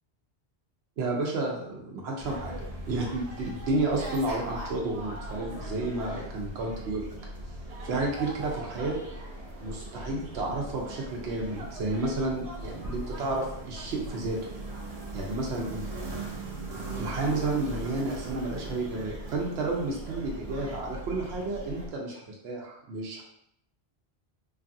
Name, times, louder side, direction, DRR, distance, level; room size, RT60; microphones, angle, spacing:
voice 1, 1.0-2.6 2.9-7.1 7.8-9.0 9.6-14.4 15.1-15.8 17.0-23.2, right 2 dB, 85° right, -2 dB, 0.9 m, -31 dB
sound 1, 2.2-21.9, right 1 dB, 50° right, 0.5 m, -39 dB
3.1 x 2.4 x 2.6 m, 0.75 s
omnidirectional pair, 1.1 m